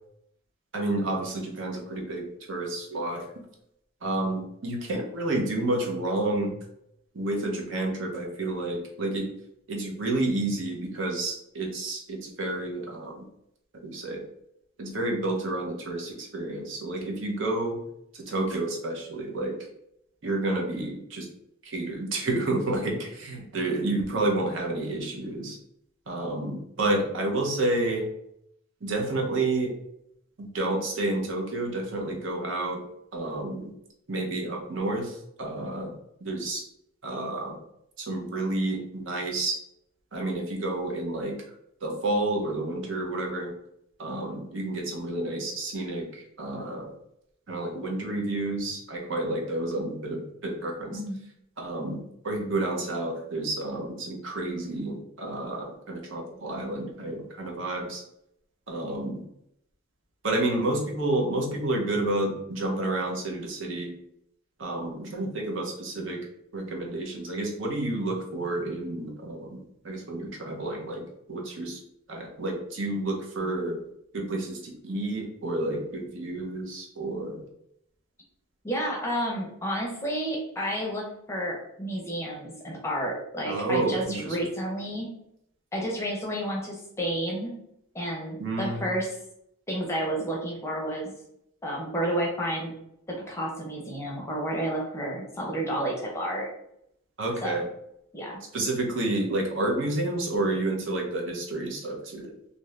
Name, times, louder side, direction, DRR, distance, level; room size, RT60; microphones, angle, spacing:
voice 1, 0.7-3.3 4.0-6.5 7.1-9.3 9.7-13.2 13.8-14.2 14.8-17.8 18.3-19.5 20.2-21.3 21.6-25.6 26.1-28.1 28.8-29.7 30.4-32.8 33.1-33.7 34.1-35.9 36.2-36.6 37.0-37.6 38.0-39.6 40.1-41.4 41.8-43.5 44.0-46.9 47.5-51.0 51.6-52.0 52.2-58.0 58.7-59.2 60.2-63.9 64.6-66.2 66.5-69.6 69.8-71.0 71.3-71.8 72.1-73.8 74.1-77.4 83.5-84.5 88.4-88.8 97.2-97.6 98.5-102.3, right 2 dB, 65° right, 0 dB, 0.7 m, -30 dB
voice 2, 50.9-51.2 78.6-85.1 85.7-87.5 87.9-89.1 89.7-91.1 91.6-92.7 93.1-96.5 97.4-97.5 98.1-98.4, right 1 dB, 15° left, -2 dB, 0.6 m, -31 dB
2.7 x 2.5 x 3.2 m, 0.76 s
head